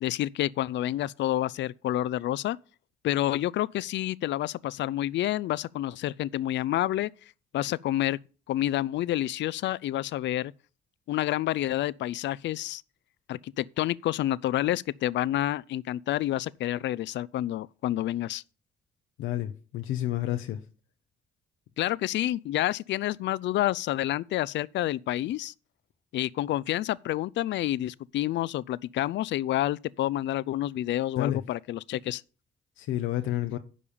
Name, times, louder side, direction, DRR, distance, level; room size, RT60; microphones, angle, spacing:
voice 1, 0.0-2.6 3.0-7.1 7.5-8.2 8.5-10.5 11.1-12.8 13.3-18.4 21.8-25.5 26.1-32.2, left 14 dB, 65° left, 0.4 m, -29 dB
voice 2, 19.2-20.6 31.2-31.4 32.8-33.6, left 13 dB, 90° left, 0.8 m, -30 dB
10.0 x 5.5 x 6.9 m
cardioid pair, 90°, 20 cm